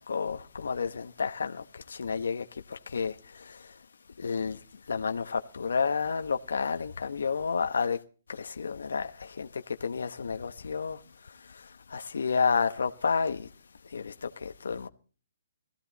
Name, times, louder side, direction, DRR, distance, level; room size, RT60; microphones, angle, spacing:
voice 1, 0.0-3.8 4.2-8.0 8.3-13.5 13.8-14.9, left 5 dB, 70° left, 1.0 m, -31 dB
19.5 x 14.5 x 4.1 m
hypercardioid pair, 180°, 0 cm